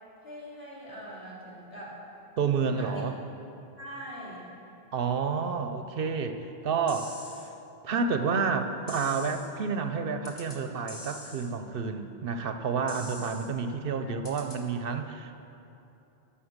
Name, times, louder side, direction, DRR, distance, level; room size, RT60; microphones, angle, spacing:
voice 1, 0.2-2.0 2.6-3.0 3.8-4.5 14.0-14.2, equal, 75° left, -6 dB, 2.9 m, -42 dB
voice 2, 2.4-3.2 4.9-7.5 7.8-15.4, right 5 dB, 65° right, 7 dB, 0.8 m, -30 dB
sound 1, 6.9-7.5 8.9-9.5 10.2-10.6 10.9-11.5 12.9-13.5 14.2-14.6, left 1 dB, 25° left, 1.1 m, -44 dB
13.0 x 5.8 x 6.5 m, 2.8 s
omnidirectional pair, 1.1 m